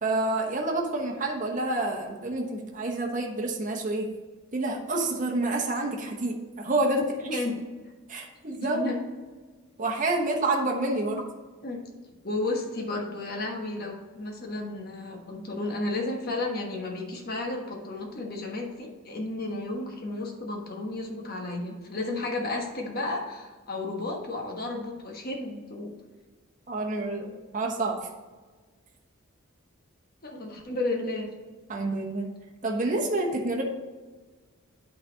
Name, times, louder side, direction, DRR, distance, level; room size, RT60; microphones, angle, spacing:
voice 1, 0.0-4.1 4.5-7.0 7.3-7.4 8.1-8.8 9.8-11.2 26.7-28.1 31.7-32.3 32.6-33.6, right 2 dB, 35° right, 0 dB, 1.0 m, -28 dB
voice 2, 8.5-9.0 11.1-11.2 11.6-11.8 12.2-25.9 30.2-31.3, left 2 dB, 45° left, 1 dB, 1.3 m, -33 dB
8.5 x 4.1 x 5.1 m, 1.4 s
head